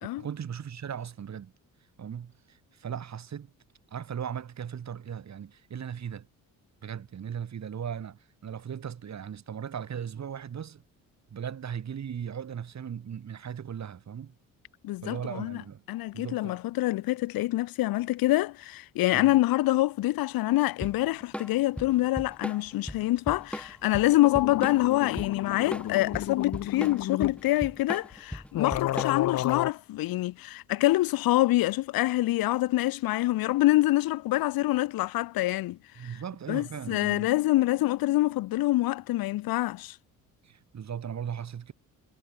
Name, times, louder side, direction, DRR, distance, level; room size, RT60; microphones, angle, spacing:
voice 1, 0.2-1.5 2.0-3.5 3.9-6.3 6.8-10.8 11.3-14.3 15.0-15.8 16.1-16.6 19.1-19.3 36.0-37.3 40.4-41.7, right 8 dB, 50° right, 5.1 m, -38 dB
voice 2, 14.8-15.6 15.9-36.2 36.5-40.0, left 17 dB, 85° left, 1.6 m, -26 dB
Drum kit / Drum, 20.8-29.4, equal, 5° left, 5.4 m, -38 dB
sound 1, 23.9-24.0 24.2-27.4 28.1-28.2 28.5-29.7, left 13 dB, 50° left, 0.5 m, -31 dB
cardioid pair, 90°, 34 cm